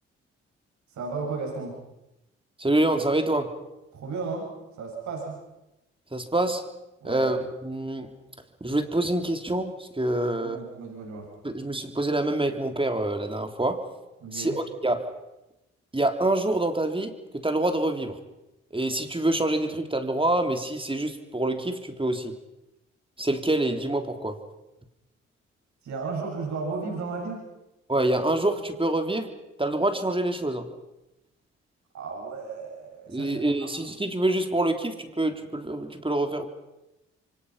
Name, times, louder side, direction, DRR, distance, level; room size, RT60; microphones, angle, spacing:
voice 1, 0.9-1.8 3.9-4.5 4.8-5.4 7.0-7.3 10.4-11.3 14.2-14.5 25.8-27.4 31.9-33.7, right 4 dB, 75° right, -2 dB, 7.2 m, -34 dB
voice 2, 2.6-3.5 6.1-6.7 7.0-8.2 8.6-10.6 11.4-13.9 14.3-15.1 15.9-18.2 18.7-22.4 23.2-24.4 27.9-29.3 29.6-30.7 33.1-36.5, right 1 dB, 20° right, 6 dB, 3.6 m, -26 dB
28.0 x 24.5 x 5.8 m, 0.95 s
hypercardioid pair, 45°, 29 cm